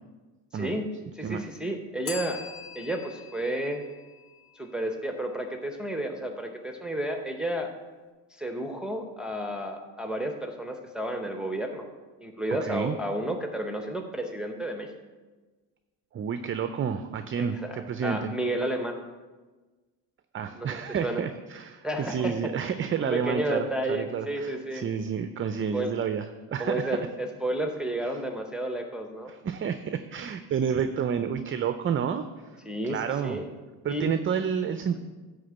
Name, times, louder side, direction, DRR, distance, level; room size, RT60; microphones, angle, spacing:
voice 1, 0.5-0.9 1.1-2.4 2.7-3.8 4.6-7.7 8.4-11.9 12.2-14.9 17.4-19.0 20.6-21.2 21.8-22.3 23.0-24.8 25.7-25.9 26.6-29.3 32.6-33.5 33.9-34.1, right 1 dB, ahead, 3 dB, 0.8 m, -31 dB
Bell, 2.1-4.9, left 5 dB, 70° left, 1.6 m, -43 dB
voice 2, 12.6-13.0 16.1-17.6 17.9-18.3 20.3-27.0 27.5-27.6 28.0-28.1 29.3-32.2 32.8-33.4 33.8-35.0, right 7 dB, 30° right, 9 dB, 0.4 m, -30 dB
10.5 x 3.7 x 7.0 m, 1.3 s
supercardioid pair, 85°, 45 cm